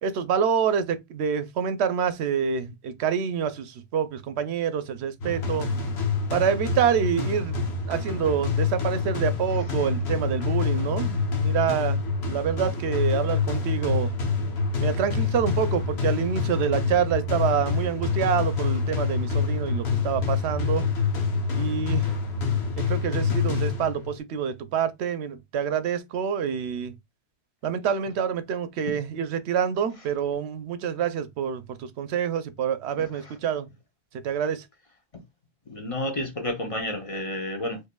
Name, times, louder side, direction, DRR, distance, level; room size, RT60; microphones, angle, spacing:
voice 1, 0.0-5.7 6.3-7.6 7.9-14.1 14.8-20.8 21.6-22.1 22.8-27.0 27.6-33.7 34.2-34.7, right 7 dB, 80° right, 0.9 m, -27 dB
sound 1, 5.2-24.2, left 5 dB, 75° left, 1.2 m, -26 dB
voice 2, 32.9-33.3 35.1-35.2 35.7-37.8, left 1 dB, 35° left, 0.8 m, -31 dB
4.7 x 2.6 x 2.2 m
omnidirectional pair, 1.1 m